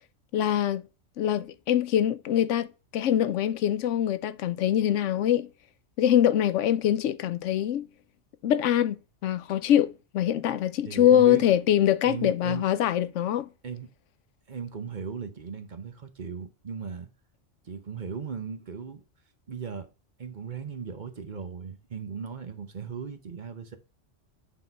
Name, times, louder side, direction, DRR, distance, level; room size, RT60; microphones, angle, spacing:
voice 1, 0.3-0.8 1.2-2.7 2.9-5.5 6.0-7.8 8.4-13.5, left 11 dB, 90° left, 0.9 m, -24 dB
voice 2, 10.8-11.4 12.0-12.6 13.6-13.9 14.5-17.1 17.6-19.0 19.5-19.9 20.2-23.8, right 6 dB, 45° right, 0.9 m, -37 dB
8.3 x 3.8 x 5.4 m
omnidirectional pair, 1.2 m